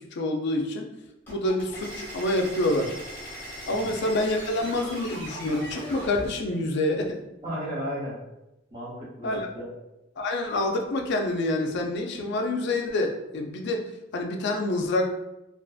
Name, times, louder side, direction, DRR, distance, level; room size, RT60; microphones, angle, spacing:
voice 1, 0.1-0.8 1.3-3.0 3.7-7.2 9.2-9.5 10.2-13.8 14.1-15.1, left 1 dB, 60° left, 2 dB, 0.4 m, -27 dB
sound 1, 1.3-6.3, equal, 10° left, 0.8 m, -39 dB
voice 2, 3.7-4.0 7.4-8.2 8.7-9.7, equal, 25° right, -7 dB, 0.6 m, -34 dB
2.5 x 2.4 x 2.3 m, 0.93 s
head